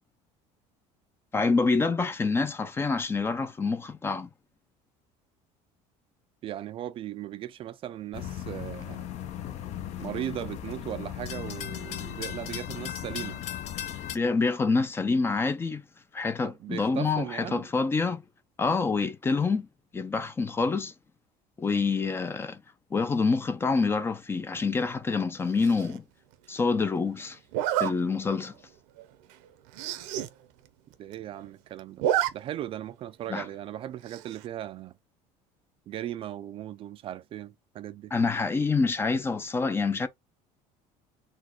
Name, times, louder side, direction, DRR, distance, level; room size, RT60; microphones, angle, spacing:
voice 1, 1.3-4.3 14.1-15.8 16.1-18.2 18.6-19.7 19.9-20.9 21.6-22.6 22.9-26.0 26.5-27.4 27.8-28.5 33.3-33.4 38.1-40.1, left 4 dB, 15° left, 0.5 m, -27 dB
voice 2, 6.4-9.1 10.0-13.4 16.4-17.7 31.0-32.1 32.3-34.9 35.9-38.1, right 12 dB, 40° right, 0.4 m, -37 dB
sound 1, 8.1-14.2, left 11 dB, 50° left, 0.7 m, -37 dB
Zipper (clothing), 25.6-26.0 27.5-27.9 28.5-28.7 29.0-29.1 29.3-29.4 29.7-30.3 30.7-30.8 30.9-31.5 31.8-32.3 32.6-32.7 34.1-34.5, right 12 dB, 85° right, 0.8 m, -29 dB
4.3 x 2.4 x 4.4 m
cardioid pair, 145°, 14 cm